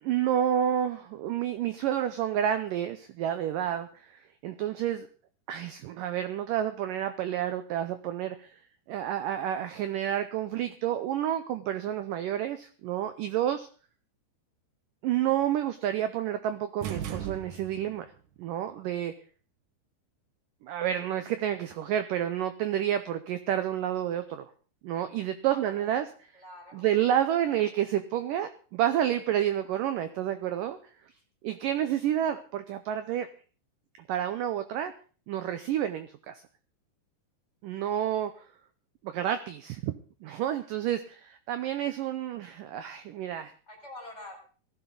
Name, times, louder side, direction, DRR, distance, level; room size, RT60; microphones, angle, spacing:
voice 1, 0.0-5.1 5.5-8.6 8.9-13.7 15.0-18.1 18.4-19.1 20.6-24.5 24.8-26.1 26.7-30.8 31.4-33.3 34.1-34.9 35.3-36.4 37.6-38.3 39.0-39.9 40.2-43.5, right 11 dB, 80° right, 10 dB, 1.9 m, -29 dB
sound 1, 16.8-18.0, right 10 dB, 60° right, 2.3 m, -37 dB
voice 2, 25.5-27.8 43.7-44.4, left 1 dB, 15° left, 0 dB, 5.0 m, -48 dB
18.5 x 14.5 x 3.9 m, 0.40 s
omnidirectional pair, 4.8 m